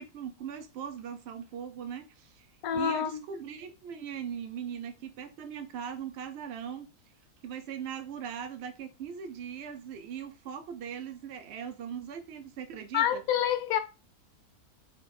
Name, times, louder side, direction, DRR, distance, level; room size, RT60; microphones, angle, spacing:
voice 1, 0.0-2.5 2.7-6.9 7.4-13.2, right 8 dB, 70° right, 0.6 m, -40 dB
voice 2, 2.6-3.2 12.9-13.8, left 9 dB, 70° left, 1.0 m, -27 dB
3.4 x 2.4 x 4.0 m
omnidirectional pair, 1.6 m